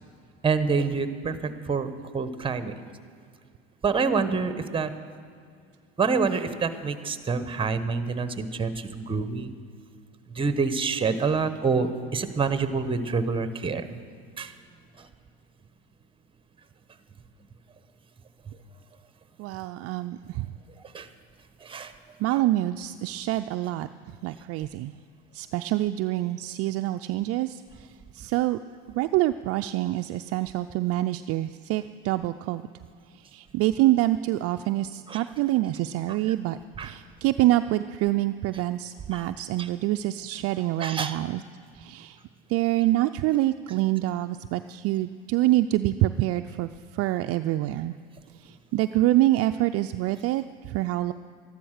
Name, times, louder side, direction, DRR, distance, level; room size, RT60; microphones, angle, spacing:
voice 1, 0.4-2.7 3.8-4.9 6.0-9.5 10.3-13.9 14.4-14.5 15.0-15.1 20.9-21.1 21.6-21.9 35.1-35.2 36.8-36.9 39.1-39.2 40.8-41.2, right 4 dB, 15° right, 11 dB, 1.0 m, -27 dB
voice 2, 19.4-20.5 22.2-23.9 24.2-24.9 25.3-27.9 28.1-28.6 28.9-32.7 33.1-41.4 41.7-42.2 42.5-47.9 48.4-51.1, right 15 dB, 50° right, 8 dB, 0.4 m, -26 dB
13.0 x 11.5 x 6.5 m, 2.3 s
supercardioid pair, 90°, 31 cm